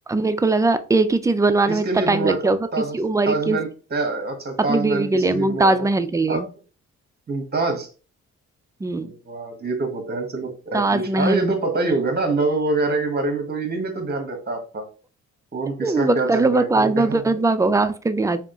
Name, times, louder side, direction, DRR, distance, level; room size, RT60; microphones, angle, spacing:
voice 1, 0.1-2.6 2.9-3.6 4.7-6.5 8.8-9.1 10.7-11.6 15.8-18.4, right 2 dB, 10° right, 11 dB, 0.3 m, -20 dB
voice 2, 1.7-3.0 3.2-5.9 6.3-6.4 7.3-7.9 9.0-14.9 15.5-17.4, right 3 dB, 35° right, 6 dB, 1.3 m, -25 dB
3.5 x 2.4 x 3.8 m, 0.36 s
cardioid pair, 90°, 30 cm